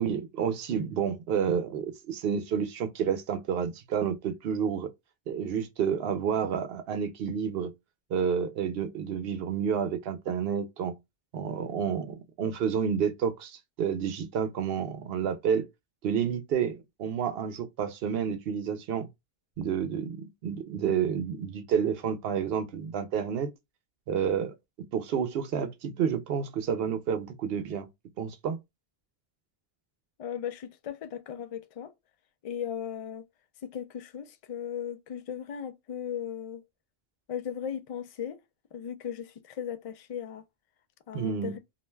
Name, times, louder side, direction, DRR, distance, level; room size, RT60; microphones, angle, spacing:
voice 1, 0.0-4.9 5.3-7.7 8.1-11.0 11.3-15.7 16.0-19.1 19.6-23.5 24.1-24.5 24.9-27.9 28.2-28.6 41.1-41.5, right 7 dB, 75° right, 0.8 m, -30 dB
voice 2, 30.2-31.9 32.4-33.3 33.7-36.6 37.3-38.4 38.7-40.4 41.1-41.6, left 9 dB, 55° left, 0.4 m, -37 dB
2.4 x 2.2 x 3.0 m
omnidirectional pair, 1.0 m